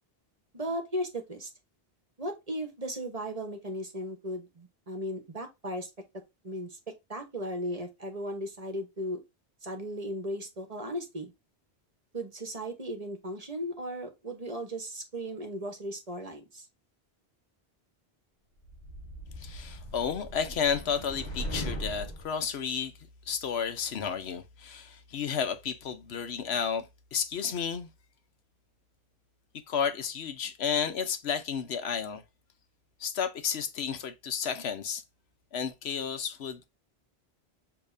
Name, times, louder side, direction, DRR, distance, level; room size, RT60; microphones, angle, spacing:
voice 1, 0.5-1.5 2.2-5.9 6.4-9.2 9.6-11.3 12.1-16.7, equal, 35° right, 1.1 m, -36 dB
sound 1, 18.6-22.3, equal, 40° left, 1.3 m, -39 dB
voice 2, 19.4-22.9 23.3-27.9 29.5-32.2 33.0-35.0 35.5-36.6, left 7 dB, 75° left, 1.0 m, -32 dB
6.9 x 2.9 x 2.6 m
omnidirectional pair, 1.1 m